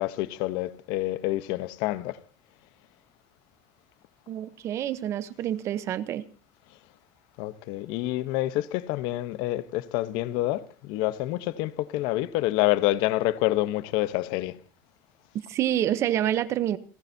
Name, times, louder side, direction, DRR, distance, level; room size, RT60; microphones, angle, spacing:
voice 1, 0.0-2.2 7.4-14.6, left 16 dB, 55° left, 0.9 m, -27 dB
voice 2, 4.3-6.3 15.5-16.8, right 11 dB, 30° right, 0.7 m, -27 dB
29.5 x 15.5 x 2.7 m
cardioid pair, 175°, 9 cm